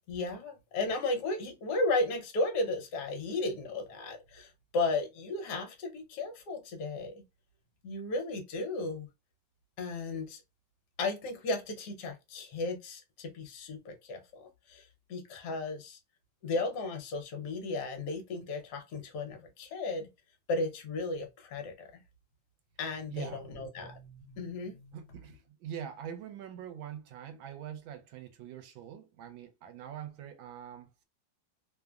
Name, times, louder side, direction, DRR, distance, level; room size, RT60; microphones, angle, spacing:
voice 1, 0.1-4.5 4.7-7.1 7.8-9.1 9.8-10.4 11.0-14.8 15.1-16.0 16.4-20.1 20.5-21.9 22.8-25.0, left 2 dB, 65° left, 1.3 m, -34 dB
voice 2, 23.1-23.6 24.9-31.0, right 9 dB, 80° right, 1.4 m, -44 dB
3.2 x 2.1 x 2.3 m
omnidirectional pair, 2.1 m